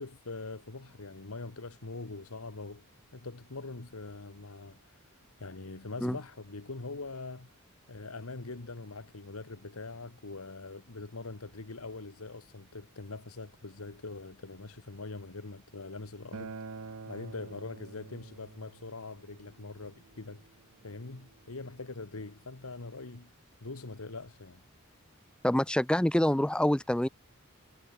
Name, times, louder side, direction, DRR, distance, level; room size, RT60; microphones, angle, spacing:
voice 1, 0.0-2.8 3.1-4.8 5.4-7.5 7.9-16.5 17.1-20.4 20.8-23.3 23.6-24.6, left 3 dB, 80° left, 1.4 m, -43 dB
Acoustic guitar, 16.3-21.5, right 4 dB, 80° right, 0.9 m, -48 dB
voice 2, 25.4-27.1, left 1 dB, 5° left, 0.4 m, -26 dB
head